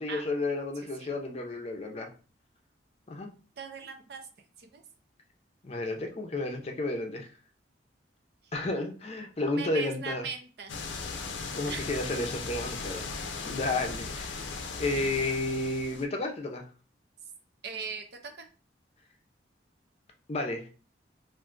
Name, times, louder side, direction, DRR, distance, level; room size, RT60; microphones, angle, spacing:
voice 1, 0.0-2.1 3.1-3.3 5.6-7.3 8.5-10.3 11.5-13.1 13.4-14.5 14.8-16.6 20.3-20.7, left 2 dB, 35° left, 3 dB, 0.5 m, -32 dB
voice 2, 3.6-4.3 4.6-4.8 9.5-10.7 11.7-11.8 17.6-18.5, right 5 dB, 60° right, 6 dB, 0.5 m, -39 dB
sound 1, 10.7-16.1, left 4 dB, 90° left, 0.5 m, -37 dB
2.5 x 2.2 x 3.7 m, 0.36 s
head